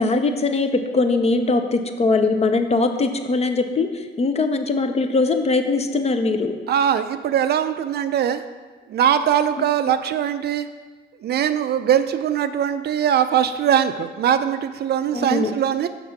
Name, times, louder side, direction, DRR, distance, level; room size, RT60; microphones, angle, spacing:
voice 1, 0.0-6.6 9.6-9.7 15.1-15.5, left 3 dB, 30° left, 7 dB, 0.5 m, -21 dB
voice 2, 6.7-8.4 8.9-10.7 11.2-15.9, right 9 dB, 55° right, 11 dB, 0.4 m, -21 dB
5.8 x 3.7 x 5.7 m, 1.4 s
cardioid pair, 90°, 20 cm